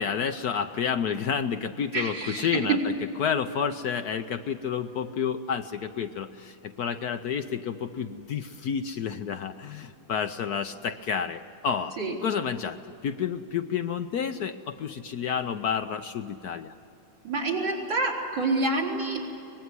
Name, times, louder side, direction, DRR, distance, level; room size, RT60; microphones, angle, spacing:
voice 1, 0.0-2.9 3.2-16.7, left 7 dB, 65° left, 8 dB, 1.1 m, -30 dB
voice 2, 1.9-2.8 12.0-12.1 17.2-19.4, right 3 dB, 70° right, -3 dB, 4.7 m, -27 dB
24.0 x 20.0 x 9.6 m, 2.9 s
omnidirectional pair, 2.1 m